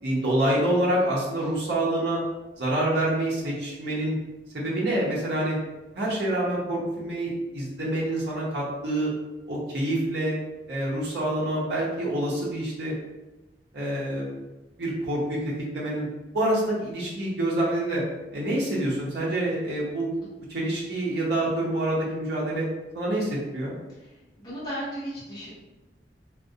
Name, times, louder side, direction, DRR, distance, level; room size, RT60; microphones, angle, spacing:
voice 1, 0.0-2.2 2.6-4.2 4.5-5.6 6.0-9.1 9.5-10.4 10.7-12.9 13.7-14.3 14.8-16.1 16.3-18.0 18.3-20.1 20.5-22.7 22.9-23.8, right 1 dB, 70° right, -5 dB, 0.6 m, -27 dB
voice 2, 24.4-25.5, equal, 25° left, -9 dB, 0.6 m, -34 dB
2.4 x 2.0 x 2.6 m, 1.1 s
head